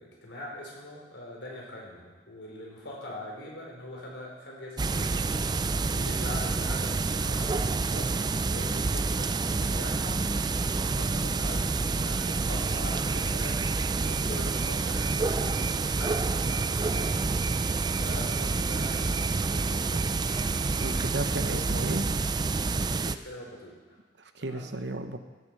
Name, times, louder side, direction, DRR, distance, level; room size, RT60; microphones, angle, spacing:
voice 1, 0.0-5.5 5.8-10.2 10.5-13.6 13.9-17.4 17.9-20.3 20.5-20.8 21.5-21.6 22.7-24.0 24.4-24.7, left 1 dB, 90° left, -2 dB, 4.6 m, -43 dB
sound 1, 4.8-23.2, right 3 dB, 25° right, 0.4 m, -28 dB
voice 2, 20.8-22.0 24.2-25.2, right 2 dB, 70° right, 8 dB, 1.1 m, -34 dB
16.5 x 8.2 x 6.7 m, 1.3 s
head